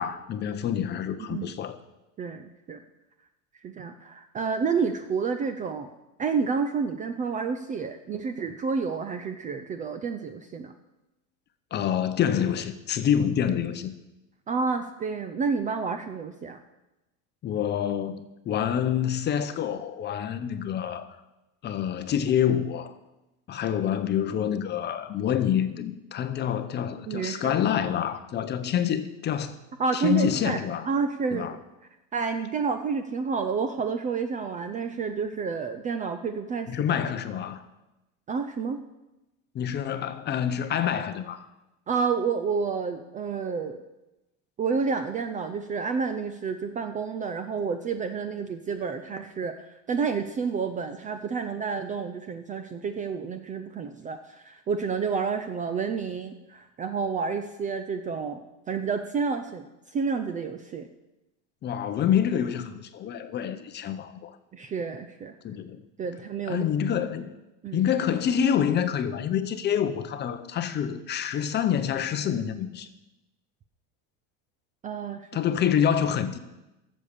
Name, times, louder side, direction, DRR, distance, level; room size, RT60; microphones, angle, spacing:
voice 1, 0.0-1.8 11.7-13.9 17.4-21.1 21.6-22.9 23.5-29.6 29.9-30.9 31.3-31.5 36.7-37.6 39.5-41.4 61.6-64.4 65.4-65.8 66.5-67.3 67.7-72.9 75.3-76.4, left 9 dB, 25° left, 0.7 m, -27 dB
voice 2, 2.2-2.8 3.6-5.9 6.2-10.7 14.5-16.6 27.1-27.6 29.8-30.6 30.8-31.6 32.1-36.7 38.3-38.8 41.9-43.8 44.6-58.4 58.7-60.9 64.5-65.3 66.0-66.7 67.6-67.8 74.8-75.3, right 5 dB, 20° right, 0.4 m, -29 dB
13.5 x 7.4 x 6.7 m
supercardioid pair, 145°, 39 cm